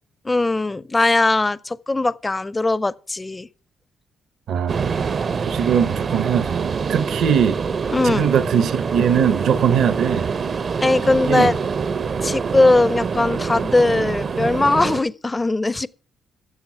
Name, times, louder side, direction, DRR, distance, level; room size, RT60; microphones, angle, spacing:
voice 1, 0.2-3.5 7.9-8.3 10.8-11.6 12.2-15.9, left 2 dB, 20° left, 0.5 m, -19 dB
voice 2, 4.5-5.0 5.4-7.6 8.0-10.3 11.1-11.5, right 8 dB, 70° right, 1.0 m, -21 dB
sound 1, 4.7-15.0, right 5 dB, 45° right, 0.6 m, -25 dB
14.0 x 7.3 x 5.7 m
cardioid pair, 90°, 0 cm